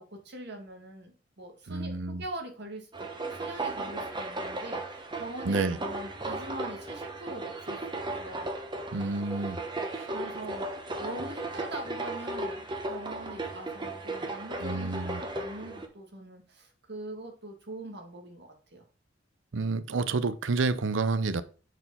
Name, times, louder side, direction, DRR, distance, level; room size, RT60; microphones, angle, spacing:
voice 1, 0.0-2.9 3.2-8.5 10.1-10.7 11.0-18.8, right 1 dB, 60° right, 1.8 m, -42 dB
voice 2, 1.7-2.2 5.5-5.8 8.9-9.6 9.9-10.1 14.6-15.2 19.5-21.4, right 3 dB, 90° right, 0.6 m, -29 dB
sound 1, 2.9-15.9, right 2 dB, 25° right, 1.0 m, -36 dB
6.1 x 4.5 x 5.4 m
head